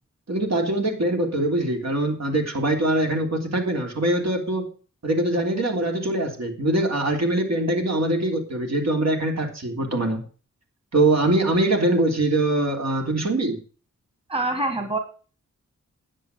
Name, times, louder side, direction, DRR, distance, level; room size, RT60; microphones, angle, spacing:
voice 1, 0.3-4.7 5.0-10.2 10.9-13.6, right 1 dB, 60° right, 2 dB, 3.3 m, -23 dB
voice 2, 14.3-15.0, right 2 dB, 20° right, 6 dB, 1.9 m, -25 dB
10.0 x 7.6 x 6.6 m, 0.38 s
wide cardioid pair, 85°, 30 cm